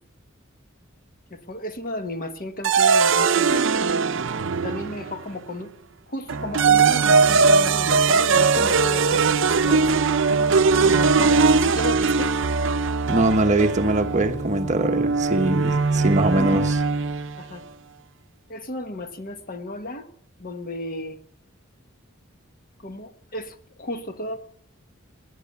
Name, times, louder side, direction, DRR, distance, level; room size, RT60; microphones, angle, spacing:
voice 1, 1.3-3.6 4.6-5.7 6.1-9.9 10.8-12.4 16.3-16.7 17.4-17.6 18.5-20.1 20.4-21.2 22.8-24.4, left 1 dB, 45° left, 1.5 m, -33 dB
sound 1, 2.6-5.2 6.3-17.4, right 4 dB, 65° right, 0.6 m, -20 dB
voice 2, 13.1-16.8, right 2 dB, 35° right, 1.2 m, -22 dB
19.5 x 10.5 x 7.0 m
head